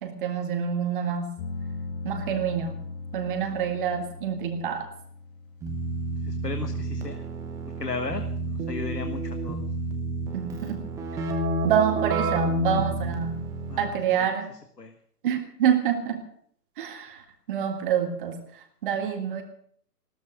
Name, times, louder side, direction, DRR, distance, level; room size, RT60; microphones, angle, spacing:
voice 1, 0.0-1.3 2.0-2.8 3.1-4.9 10.3-10.8 11.6-13.4 13.8-14.5 15.2-16.2 16.8-19.4, right 8 dB, 35° right, 6 dB, 1.9 m, -27 dB
sound 1, 1.4-6.9, left 3 dB, 35° left, 2.3 m, -39 dB
Keyboard (musical), 5.6-14.0, right 2 dB, 5° right, 0.9 m, -30 dB
voice 2, 6.2-7.3 7.8-9.6 13.7-13.9 14.8-14.9, left 4 dB, 80° left, 7 dB, 1.5 m, -35 dB
15.5 x 13.5 x 6.5 m, 0.62 s
figure-of-eight pair, 130°, 48 cm